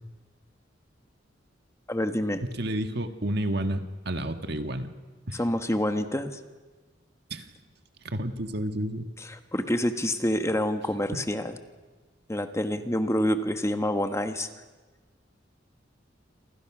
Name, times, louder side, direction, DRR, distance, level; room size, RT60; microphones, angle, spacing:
voice 1, 1.9-2.4 5.3-6.3 9.2-11.5 12.3-14.5, left 1 dB, 15° left, 7 dB, 1.4 m, -27 dB
voice 2, 2.4-4.9 5.3-5.4 7.3-7.5 8.0-9.1 11.1-11.2, right 1 dB, 60° right, 7 dB, 1.8 m, -30 dB
28.5 x 26.5 x 6.2 m, 1.3 s
head